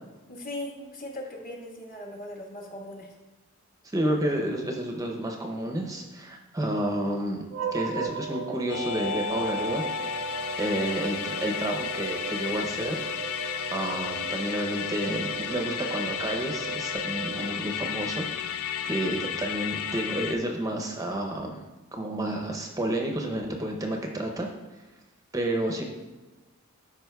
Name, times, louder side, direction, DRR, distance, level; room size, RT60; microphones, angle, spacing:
voice 1, 0.3-3.1, left 1 dB, 45° left, -1 dB, 1.4 m, -39 dB
voice 2, 3.9-7.4 7.7-9.8 10.6-13.1 13.3-21.6 21.9-24.5 25.3-25.8, right 1 dB, 15° right, 2 dB, 0.6 m, -30 dB
sound 1, 7.5-18.0, right 6 dB, 75° right, 0.6 m, -37 dB
Musical instrument, 8.7-20.4, left 8 dB, 80° left, 0.4 m, -33 dB
12.0 x 5.0 x 2.3 m, 1.2 s
head